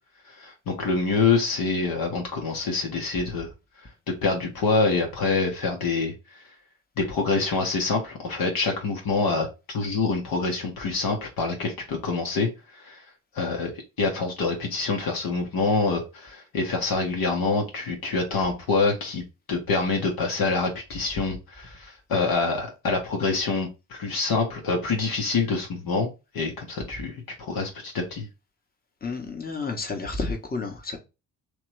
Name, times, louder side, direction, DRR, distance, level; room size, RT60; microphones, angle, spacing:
voice 1, 0.3-3.5 4.2-6.4 7.0-9.5 9.7-12.5 12.8-13.0 13.3-13.7 14.0-19.2 19.5-28.3, left 4 dB, 50° left, 1.2 m, -26 dB
voice 2, 29.0-31.0, left 3 dB, 20° left, 1.3 m, -31 dB
3.5 x 3.1 x 3.3 m
figure-of-eight pair, 40°, 46 cm